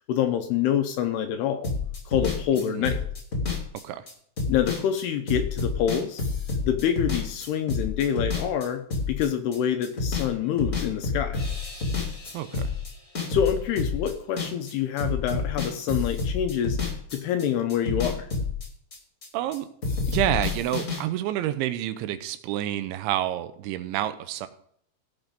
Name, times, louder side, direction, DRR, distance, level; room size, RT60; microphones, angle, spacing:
voice 1, 0.1-1.7 2.1-3.0 4.5-6.2 6.6-11.4 13.3-18.3, left 9 dB, 75° left, 7 dB, 2.5 m, -26 dB
sound 1, 1.6-10.3 10.6-14.7 15.0-19.6 19.8-21.0, left 4 dB, 35° left, 1.4 m, -29 dB
voice 2, 2.6-2.9 3.8-4.0 12.3-12.6 19.3-19.7 20.1-24.5, right 13 dB, 85° right, 11 dB, 3.2 m, -28 dB
16.0 x 5.9 x 5.2 m, 0.65 s
omnidirectional pair, 5.3 m